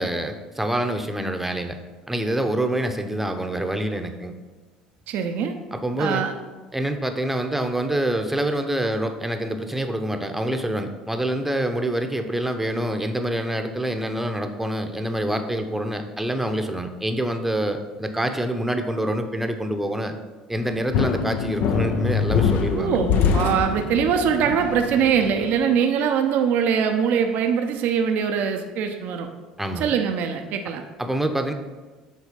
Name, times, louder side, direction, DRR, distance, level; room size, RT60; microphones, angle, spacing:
voice 1, 0.0-1.8 2.1-4.3 5.7-6.2 6.7-20.2 20.5-23.0 29.6-29.9 31.0-31.5, right 1 dB, 5° right, 6 dB, 0.8 m, -26 dB
voice 2, 5.1-5.5 6.0-6.3 22.7-29.3 29.8-30.8, right 7 dB, 60° right, 5 dB, 0.6 m, -22 dB
sound 1, 20.6-25.6, left 6 dB, 60° left, 0.6 m, -24 dB
7.4 x 3.8 x 5.2 m, 1.3 s
hypercardioid pair, 70°, 3 cm